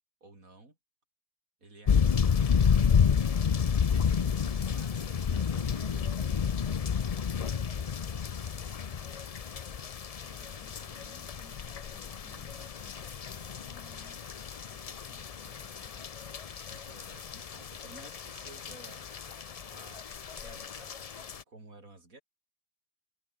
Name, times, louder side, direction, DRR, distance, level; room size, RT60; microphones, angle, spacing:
voice 1, 0.2-0.8 1.6-2.7 3.9-6.2 14.1-14.3 16.7-19.1 19.7-22.2, right 2 dB, 75° right, 4.9 m, -54 dB
sound 1, 1.9-21.4, left 7 dB, 50° left, 0.4 m, -30 dB
voice 2, 7.0-9.6 10.0-14.4 14.6-16.4, left 2 dB, 90° left, 7.8 m, -60 dB
omnidirectional pair, 1.5 m